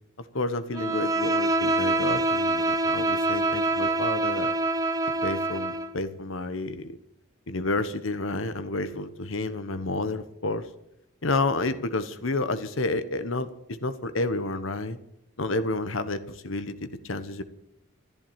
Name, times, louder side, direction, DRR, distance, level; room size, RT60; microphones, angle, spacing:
voice 1, 0.3-4.5 5.2-7.0 7.5-10.7 11.2-15.0 15.4-17.4, left 2 dB, 80° left, 11 dB, 1.2 m, -30 dB
Bowed string instrument, 0.7-5.9, right 2 dB, 15° right, 0.8 m, -25 dB
14.5 x 11.0 x 8.9 m, 0.85 s
head